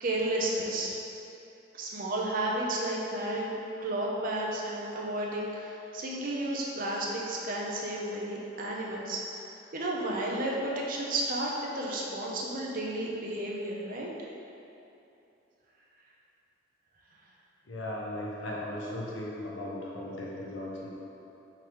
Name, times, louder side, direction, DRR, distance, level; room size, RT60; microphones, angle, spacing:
voice 1, 0.0-0.9 1.7-3.5 3.8-9.2 9.7-14.1, right 1 dB, 45° right, -3 dB, 0.6 m, -32 dB
voice 2, 17.7-20.9, left 1 dB, 80° left, -4 dB, 0.8 m, -37 dB
4.5 x 3.7 x 3.0 m, 2.9 s
head